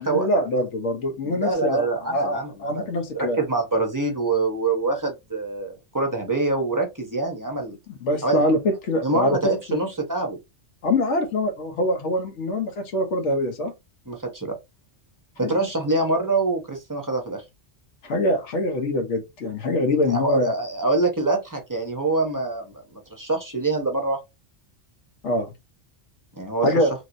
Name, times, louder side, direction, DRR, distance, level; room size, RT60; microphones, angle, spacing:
voice 1, 0.0-3.4 8.0-9.8 10.8-13.7 15.4-15.5 18.0-20.5 25.2-25.5 26.6-26.9, left 1 dB, 80° left, 1.1 m, -24 dB
voice 2, 1.2-7.8 8.2-8.5 9.0-10.4 14.1-14.6 15.4-17.4 20.1-24.2 26.3-26.8, right 3 dB, 20° right, 0.6 m, -25 dB
3.2 x 2.8 x 2.5 m
omnidirectional pair, 1.2 m